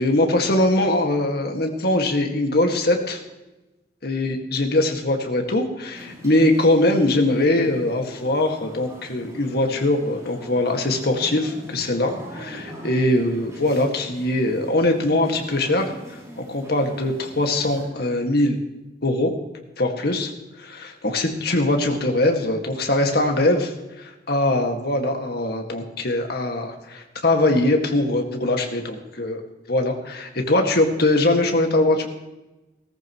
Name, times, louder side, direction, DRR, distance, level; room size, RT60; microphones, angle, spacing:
voice 1, 0.0-3.2 4.0-15.9 16.5-18.6 19.0-19.3 19.8-20.3 20.6-23.7 24.0-29.4 29.7-32.1, left 1 dB, 60° left, 3 dB, 1.9 m, -21 dB
sound 1, 5.9-17.9, equal, 20° right, 5.1 m, -42 dB
18.0 x 14.0 x 3.1 m, 1.0 s
head